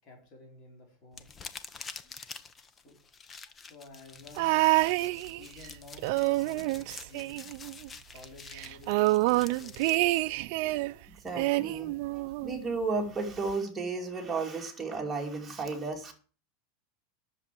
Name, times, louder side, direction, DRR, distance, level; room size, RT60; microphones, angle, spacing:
voice 1, 0.0-1.3 2.7-3.0 3.6-4.8 5.4-7.5 8.1-10.1, left 3 dB, 40° left, 1 dB, 4.7 m, -52 dB
sound 1, 1.1-10.2, left 5 dB, 20° left, 0.9 m, -48 dB
sound 2, 4.4-5.7 6.0-7.9 8.2-8.3 8.5-10.9 11.4-12.6 13.5-13.6, right 20 dB, 55° right, 0.6 m, -27 dB
voice 2, 10.6-11.0 11.2-16.1, right 4 dB, 10° right, 1 dB, 2.7 m, -34 dB
10.5 x 7.1 x 7.6 m, 0.40 s
supercardioid pair, 155°, 0 cm